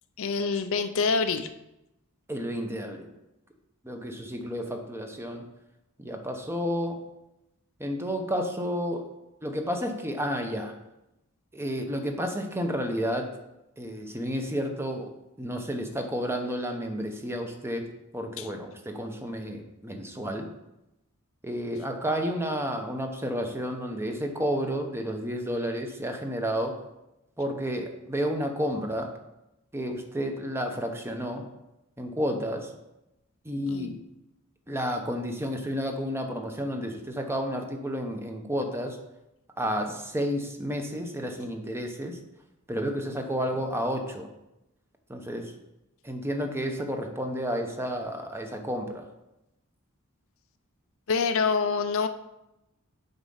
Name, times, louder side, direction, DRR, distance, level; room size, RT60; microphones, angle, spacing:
voice 1, 0.2-1.5 18.4-18.5 33.7-34.0 51.1-52.1, left 5 dB, 65° left, 9 dB, 0.6 m, -26 dB
voice 2, 2.3-3.1 3.8-5.4 6.0-7.0 7.8-9.1 9.4-10.7 11.5-13.3 13.8-15.1 15.4-17.9 18.1-20.5 21.4-26.8 27.4-29.1 29.7-31.5 32.0-32.7 33.4-33.9 34.7-39.0 39.6-42.2 42.7-44.3 45.1-45.5 46.0-49.0, equal, 10° right, 4 dB, 0.9 m, -31 dB
8.0 x 5.2 x 5.5 m, 0.91 s
head